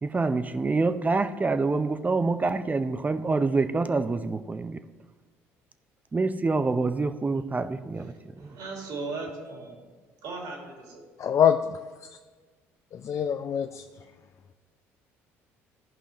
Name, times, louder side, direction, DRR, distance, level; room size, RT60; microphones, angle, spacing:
voice 1, 0.0-4.8 6.1-8.6, right 3 dB, 25° right, 10 dB, 0.6 m, -26 dB
voice 2, 8.4-9.8 10.2-11.0, right 3 dB, 70° right, 0 dB, 2.5 m, -37 dB
voice 3, 11.2-11.7 12.9-13.8, left 8 dB, 50° left, 8 dB, 0.4 m, -24 dB
15.0 x 5.5 x 3.1 m, 1.4 s
hypercardioid pair, 65°, 7 cm